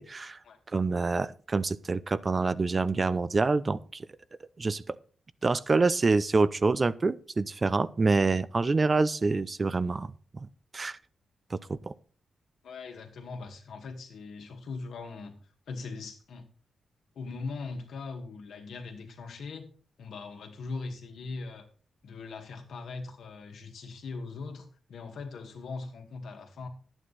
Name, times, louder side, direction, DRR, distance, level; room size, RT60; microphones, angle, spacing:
voice 1, 0.0-0.4 0.7-4.1 4.6-5.0 5.4-10.1 10.7-11.0 11.5-11.9, right 3 dB, 40° right, 17 dB, 0.6 m, -26 dB
voice 2, 12.6-15.4 15.7-16.5 17.2-19.7 20.0-21.7 22.0-26.7, left 4 dB, 80° left, 3 dB, 2.0 m, -40 dB
11.0 x 9.1 x 4.1 m, 0.41 s
cardioid pair, 65°, 0 cm